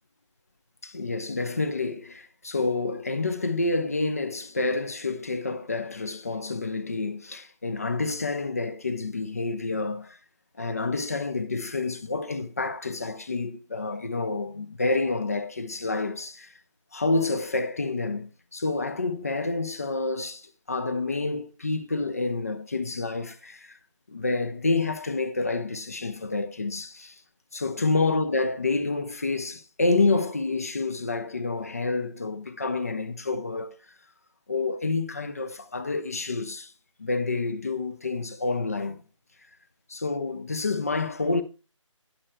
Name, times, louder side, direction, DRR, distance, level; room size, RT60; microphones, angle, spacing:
voice 1, 0.8-10.2 10.6-16.5 16.9-23.8 24.1-27.2 27.5-33.8 34.5-36.7 37.0-39.0 39.9-41.4, left 3 dB, 30° left, 0.5 m, -28 dB
11.0 x 9.0 x 2.2 m
figure-of-eight pair, 155°, 16 cm